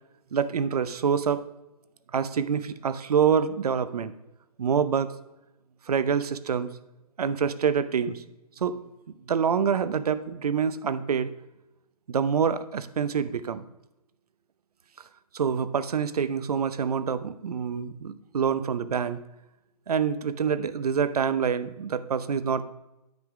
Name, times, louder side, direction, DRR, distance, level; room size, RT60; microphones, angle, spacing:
voice 1, 0.3-1.4 2.1-4.1 4.6-5.1 5.9-6.7 7.2-8.2 8.6-8.8 9.3-11.3 12.1-13.7 15.3-19.2 19.9-22.6, right 7 dB, 70° right, 14 dB, 0.7 m, -26 dB
9.5 x 5.6 x 4.8 m, 0.93 s
hypercardioid pair, 170°, 20 cm